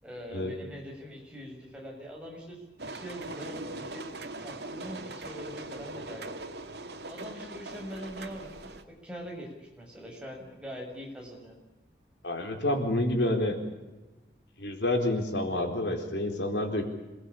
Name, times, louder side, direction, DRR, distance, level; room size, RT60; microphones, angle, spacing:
voice 1, 0.0-6.5 7.1-8.7 9.0-11.6, equal, 5° right, -1 dB, 7.1 m, -43 dB
sound 1, 2.8-8.8, right 2 dB, 70° right, 2.4 m, -41 dB
voice 2, 12.2-13.6 14.6-16.9, left 1 dB, 90° left, 5 dB, 4.2 m, -28 dB
27.0 x 20.0 x 8.7 m, 1.1 s
head